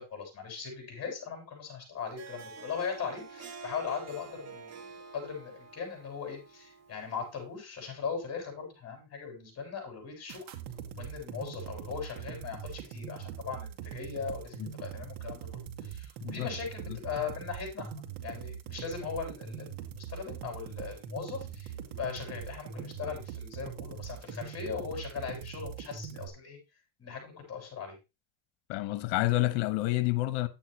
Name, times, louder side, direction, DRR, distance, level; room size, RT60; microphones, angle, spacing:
voice 1, 0.0-10.5 11.0-26.6 27.0-28.0, left 6 dB, 30° left, 6.6 m, -39 dB
Harp, 2.0-7.4, right 4 dB, 30° right, 2.0 m, -48 dB
sound 1, 10.3-26.3, right 8 dB, 75° right, 2.4 m, -42 dB
voice 2, 16.2-16.5 16.9-17.0 28.7-30.5, left 18 dB, 75° left, 1.3 m, -29 dB
10.5 x 8.8 x 3.2 m
supercardioid pair, 115°, 50 cm